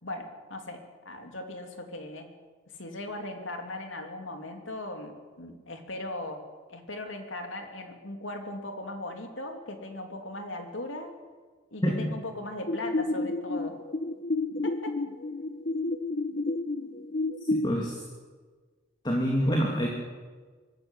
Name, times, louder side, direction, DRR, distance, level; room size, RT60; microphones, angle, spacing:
voice 1, 0.0-2.3 2.8-11.1 11.7-13.8 14.6-15.0 16.8-16.9, left 2 dB, 80° left, 5 dB, 3.0 m, -38 dB
sound 1, 12.7-17.7, left 2 dB, 50° left, 0.9 m, -30 dB
voice 2, 17.5-18.0 19.0-19.9, equal, 20° left, -1 dB, 2.8 m, -26 dB
24.5 x 15.0 x 8.2 m, 1.4 s
head